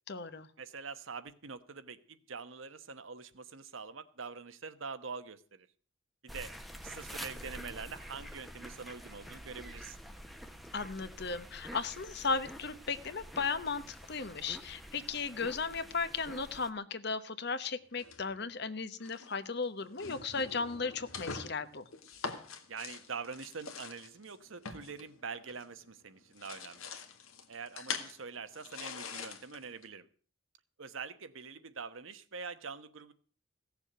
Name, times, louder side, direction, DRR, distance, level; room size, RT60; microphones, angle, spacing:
voice 1, 0.1-0.5 10.7-21.9, left 4 dB, 50° left, 12 dB, 1.0 m, -36 dB
voice 2, 0.6-5.7 6.2-6.5 6.8-10.0 22.7-26.9 27.5-30.1 30.8-33.1, right 5 dB, 70° right, 11 dB, 1.1 m, -44 dB
sound 1, 6.3-16.7, equal, ahead, 0.9 m, -48 dB
sound 2, 18.0-18.6 19.0-19.3 19.8-25.9 26.2-29.9, left 5 dB, 90° left, 1.7 m, -44 dB
16.5 x 7.1 x 7.9 m, 0.43 s
head